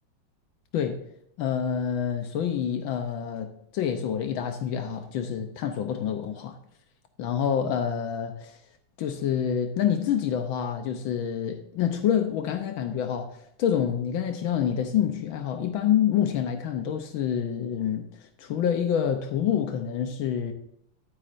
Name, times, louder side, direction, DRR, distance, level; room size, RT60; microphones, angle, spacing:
voice 1, 1.4-6.6 7.2-8.6 9.0-18.1 18.4-20.5, left 8 dB, 75° left, 6 dB, 1.5 m, -27 dB
11.0 x 9.7 x 2.5 m, 0.73 s
omnidirectional pair, 2.3 m